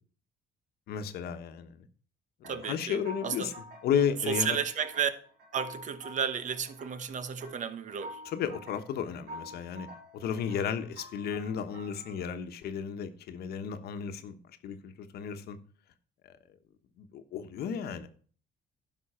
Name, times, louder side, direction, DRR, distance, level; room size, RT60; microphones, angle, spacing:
voice 1, 0.9-1.9 2.5-3.5 3.8-4.6 8.3-9.9 10.1-14.4 14.6-15.6 17.0-18.1, left 7 dB, 70° left, 1.2 m, -33 dB
sound 1, 2.4-12.3, equal, 75° right, 4.1 m, -48 dB
voice 2, 2.5-3.5 4.3-5.1 5.5-8.2, right 7 dB, 45° right, 1.1 m, -33 dB
11.5 x 5.6 x 5.7 m
cardioid pair, 110°, 17 cm